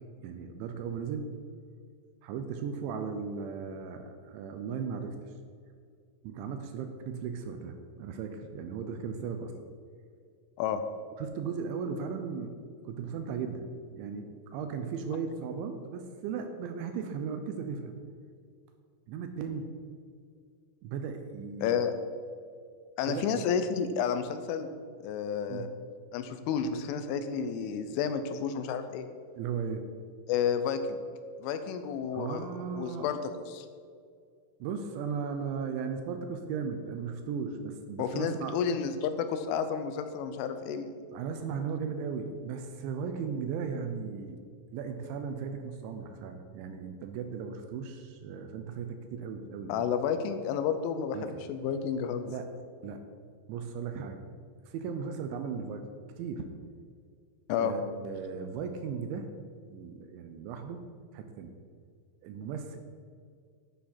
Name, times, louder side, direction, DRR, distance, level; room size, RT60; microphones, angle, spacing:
voice 1, 0.2-1.3 2.2-5.1 6.2-9.5 11.2-12.6 12.8-18.0 19.1-19.7 20.8-21.9 23.1-23.4 25.5-25.7 29.4-29.9 32.1-33.1 34.6-38.6 41.1-44.4 44.7-49.9 51.1-51.4 52.2-52.5 52.8-53.0 53.5-54.2 54.7-55.9 56.2-56.5 57.6-59.3 59.7-60.8 61.1-61.5 62.2-62.8, right 6 dB, 80° right, 6 dB, 2.9 m, -36 dB
voice 2, 21.6-21.9 23.0-24.7 25.0-25.7 26.1-29.1 30.3-31.0 31.4-33.2 33.5-33.7 38.0-41.0 49.7-51.2 51.5-52.3 57.5-57.7, left 7 dB, 80° left, 9 dB, 3.1 m, -31 dB
11.5 x 10.0 x 4.3 m, 2.2 s
omnidirectional pair, 5.8 m